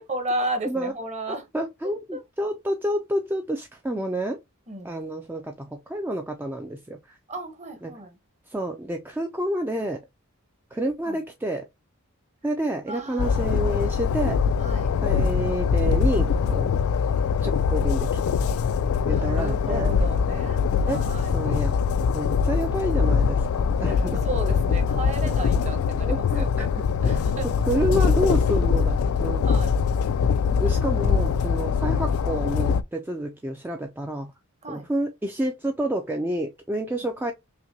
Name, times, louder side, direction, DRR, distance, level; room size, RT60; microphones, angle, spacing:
voice 1, 0.0-1.5 1.8-2.2 4.7-5.0 7.3-8.2 11.0-11.2 12.8-13.6 14.6-14.9 19.1-21.3 23.8-26.7 27.0-27.5 29.4-29.7 34.6-34.9 36.9-37.1, right 2 dB, 35° right, 1.0 m, -34 dB
voice 2, 1.3-4.4 4.8-7.2 7.8-7.9 8.5-10.0 10.7-11.7 12.4-14.4 15.0-16.8 17.4-18.4 19.1-19.9 20.9-21.8 22.1-24.2 25.2-25.3 26.1-26.7 27.1-27.2 27.4-29.4 30.6-34.3 34.7-37.3, right 1 dB, 10° right, 0.3 m, -29 dB
Train, 13.2-32.8, left 6 dB, 90° left, 0.3 m, -23 dB
5.6 x 2.2 x 2.7 m
head